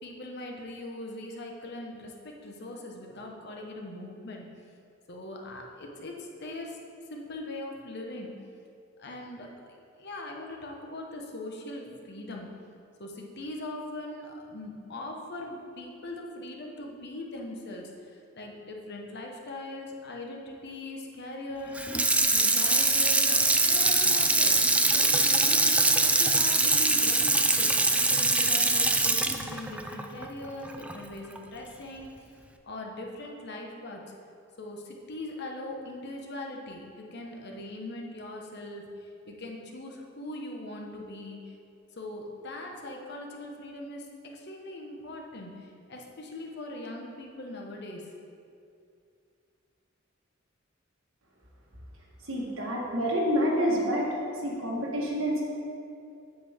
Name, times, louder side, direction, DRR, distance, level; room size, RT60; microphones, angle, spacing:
voice 1, 0.0-4.5 5.1-6.8 7.1-8.3 9.0-12.5 13.0-21.9 22.3-24.6 24.9-27.7 28.2-32.3 32.6-34.0 34.6-41.5 42.0-48.1, left 1 dB, 55° left, 0 dB, 1.0 m, -41 dB
Water tap faucet / Sink (filling or washing), 21.7-31.0 31.4-31.5, right 2 dB, 5° right, 0.3 m, -23 dB
voice 2, 52.2-54.1 54.4-55.4, equal, 80° right, -3 dB, 1.6 m, -28 dB
7.9 x 7.6 x 3.6 m, 2.5 s
head